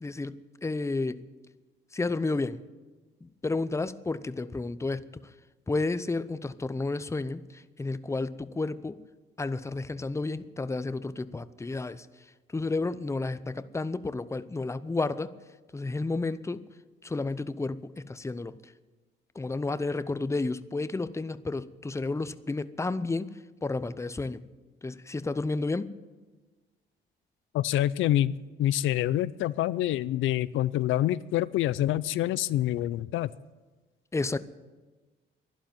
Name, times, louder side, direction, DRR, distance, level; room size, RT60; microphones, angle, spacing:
voice 1, 0.0-1.2 1.9-2.6 3.2-5.1 5.7-9.0 9.4-12.1 12.5-15.3 15.7-16.6 17.0-18.7 19.3-23.3 23.6-24.4 24.8-25.9 34.1-34.4, left 3 dB, 15° left, 0.7 m, -31 dB
voice 2, 27.5-28.3 28.6-33.3, left 13 dB, 85° left, 0.5 m, -26 dB
12.0 x 11.5 x 9.3 m
cardioid pair, 90°, 20 cm